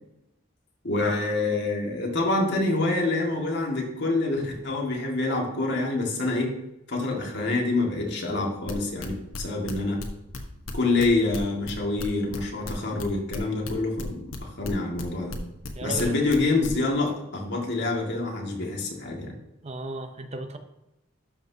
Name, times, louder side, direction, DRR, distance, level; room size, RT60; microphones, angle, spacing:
voice 1, 0.8-6.6 6.9-10.0 10.7-15.4 15.8-19.4, left 2 dB, 55° left, -1 dB, 2.0 m, -26 dB
sound 1, 8.7-14.4 14.6-16.0 16.3-16.7, left 3 dB, 80° left, 1.2 m, -36 dB
voice 2, 15.8-16.2 19.6-20.6, right 2 dB, 30° right, 7 dB, 0.6 m, -34 dB
12.0 x 5.8 x 2.8 m, 0.90 s
head